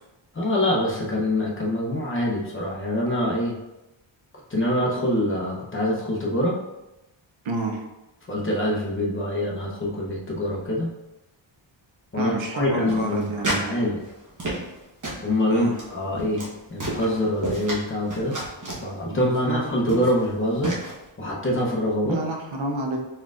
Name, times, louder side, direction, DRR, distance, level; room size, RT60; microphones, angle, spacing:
voice 1, 0.3-3.6 4.5-6.6 8.3-10.9 12.1-14.0 15.2-18.4 18.8-20.8 21.2-22.2, left 1 dB, 25° left, -3 dB, 0.8 m, -25 dB
voice 2, 7.4-7.8 12.1-13.9 15.5-15.8 19.1-19.6 22.0-23.0, right 2 dB, 75° right, 2 dB, 0.8 m, -29 dB
sound 1, 12.9-13.7 14.0-14.8 15.0-15.3 15.7-15.9 16.1-16.5 16.8-17.8 18.1-18.8 19.5-19.6 19.9-20.2 20.6-20.9, right 1 dB, 40° right, 1.0 m, -30 dB
4.4 x 3.6 x 2.4 m, 0.97 s
wide cardioid pair, 145°, 47 cm